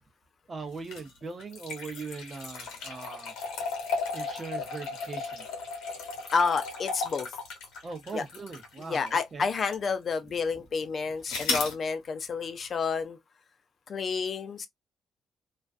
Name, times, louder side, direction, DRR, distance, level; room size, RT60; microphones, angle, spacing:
voice 1, 0.5-3.3 4.1-5.4 7.8-9.5, right 4 dB, 35° right, 0.7 m, -40 dB
sound 1, 0.8-9.2 9.7-9.8 11.3-11.8, left 4 dB, 90° left, 1.0 m, -35 dB
voice 2, 6.3-7.3 8.1-8.2 8.8-13.2 13.9-14.7, left 5 dB, 50° left, 0.4 m, -30 dB
2.4 x 2.2 x 2.4 m
cardioid pair, 90°, 0 cm